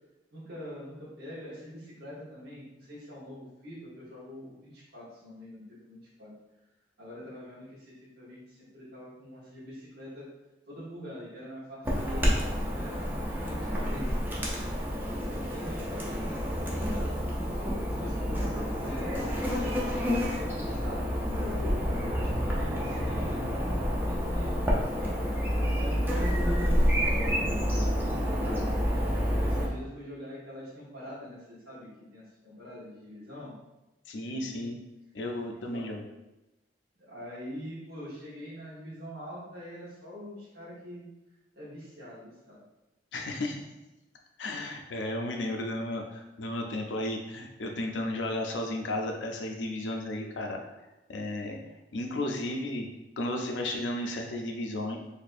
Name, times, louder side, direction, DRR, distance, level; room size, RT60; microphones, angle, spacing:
voice 1, 0.3-6.3 7.0-10.3 10.7-14.6 15.1-17.5 17.9-19.2 20.0-25.2 25.7-29.0 29.4-33.5 34.3-34.7 35.5-36.0 37.0-41.1 41.5-42.6, equal, 60° right, -8 dB, 1.1 m, -44 dB
Chirp tweet / Buzz, 11.8-29.7, equal, 10° right, 0.6 m, -29 dB
voice 2, 34.1-34.8 35.1-36.0 43.1-43.6 44.4-50.6 51.1-51.6 51.9-52.9 53.2-55.0, left 1 dB, 90° left, 2 dB, 0.5 m, -33 dB
4.2 x 2.6 x 2.5 m, 1.0 s
head